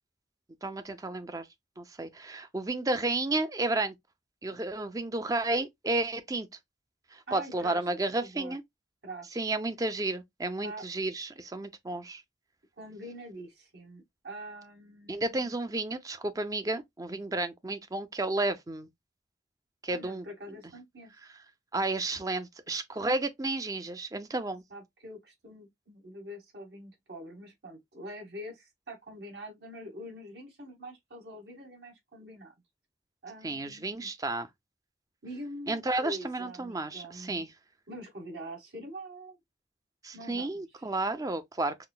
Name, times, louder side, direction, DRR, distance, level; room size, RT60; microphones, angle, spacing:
voice 1, 0.6-1.5 1.8-3.9 4.4-6.5 7.1-8.6 9.3-12.2 15.1-18.9 19.8-20.2 21.7-24.6 33.4-34.5 35.7-37.5 40.0-41.9, right 2 dB, 20° right, 0.5 m, -32 dB
voice 2, 7.3-7.9 8.2-8.6 9.0-9.4 10.6-10.9 12.8-15.5 17.1-17.2 19.9-21.1 24.7-32.5 33.2-34.1 35.2-37.4 37.9-39.4 40.1-41.0, equal, 70° right, 1.9 m, -44 dB
5.7 x 2.0 x 2.2 m
head